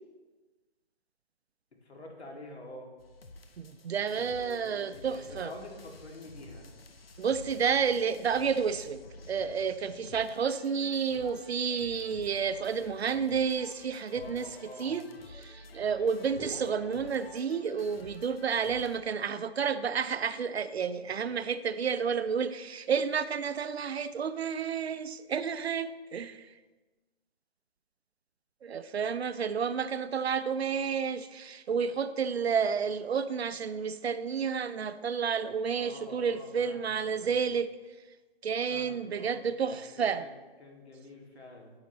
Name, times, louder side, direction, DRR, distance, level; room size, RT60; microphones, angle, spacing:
voice 1, 1.7-2.9 4.2-6.6 14.1-15.0 35.7-37.4 38.7-41.7, left 1 dB, 90° left, 0 dB, 2.5 m, -48 dB
sound 1, 3.0-19.0, left 2 dB, 65° left, 1.0 m, -51 dB
voice 2, 3.6-5.5 7.2-9.0 9.3-14.5 14.8-15.1 15.3-26.5 28.6-37.7 38.4-40.3, right 6 dB, 80° right, 13 dB, 0.6 m, -30 dB
sound 2, 16.4-18.3, right 2 dB, 5° left, 0.7 m, -46 dB
9.4 x 8.9 x 3.0 m, 1.3 s
hypercardioid pair, 175°, 31 cm